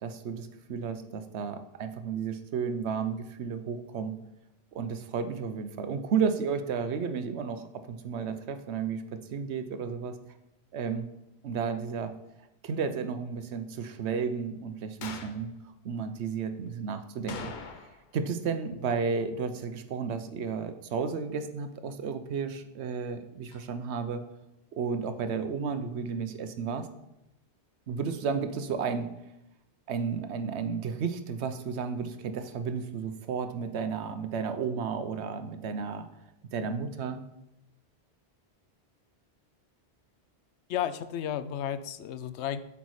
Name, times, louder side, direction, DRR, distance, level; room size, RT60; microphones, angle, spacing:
voice 1, 0.0-4.2 4.7-9.0 9.3-10.1 10.7-11.1 11.4-12.1 12.6-15.6 15.8-17.5 18.1-24.2 24.7-26.9 27.9-29.1 29.9-36.1 36.5-37.2, right 6 dB, 80° right, 9 dB, 1.0 m, -32 dB
sound 1, 15.0-15.4 17.3-18.1 18.4-18.5 23.5-23.6, left 5 dB, 50° left, 0.8 m, -41 dB
voice 2, 40.7-42.6, left 10 dB, 85° left, 13 dB, 0.9 m, -33 dB
8.1 x 5.9 x 4.8 m, 0.89 s
omnidirectional pair, 1.1 m